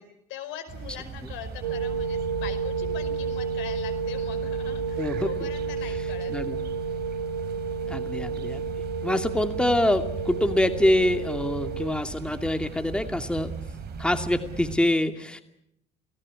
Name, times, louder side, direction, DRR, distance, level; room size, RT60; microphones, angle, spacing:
voice 1, 0.3-6.3, left 10 dB, 65° left, 9 dB, 5.1 m, -41 dB
sound 1, 0.7-14.8, right 5 dB, 50° right, 3.9 m, -39 dB
sound 2, 1.6-11.9, right 5 dB, 85° right, 3.1 m, -31 dB
voice 2, 5.0-5.3 6.3-6.6 7.9-8.6 9.0-13.5 14.0-15.4, left 1 dB, 5° left, 7 dB, 2.5 m, -25 dB
29.0 x 18.5 x 9.8 m, 0.77 s
hypercardioid pair, 60°, 21 cm